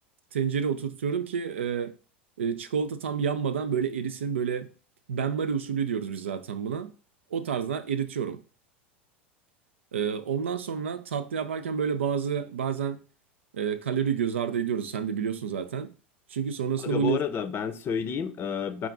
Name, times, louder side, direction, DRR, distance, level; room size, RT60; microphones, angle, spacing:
voice 1, 0.3-1.9 2.4-4.7 5.1-6.9 7.3-8.4 9.9-13.0 13.5-15.9 16.3-17.2, right 7 dB, 85° right, 0.4 m, -29 dB
voice 2, 16.8-18.9, left 7 dB, 35° left, 0.6 m, -30 dB
4.4 x 2.4 x 3.8 m
hypercardioid pair, 90°, 6 cm